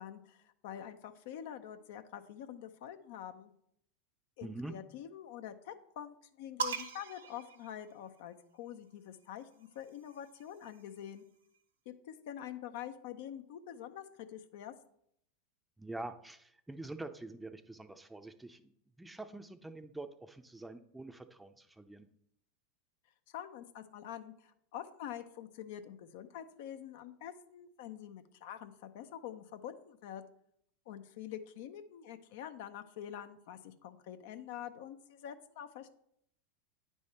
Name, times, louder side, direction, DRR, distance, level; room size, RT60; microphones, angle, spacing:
voice 1, 0.0-3.5 4.4-11.2 11.9-14.7 23.3-30.2 30.9-35.9, left 10 dB, 65° left, 9 dB, 0.6 m, -46 dB
voice 2, 4.4-4.7 15.8-18.7 19.0-22.1, right 2 dB, 10° right, 9 dB, 0.5 m, -45 dB
sound 1, 6.6-8.4 9.5-11.2, right 5 dB, 80° right, 0.9 m, -42 dB
9.5 x 3.5 x 4.2 m, 0.71 s
hypercardioid pair, 95°, 0 cm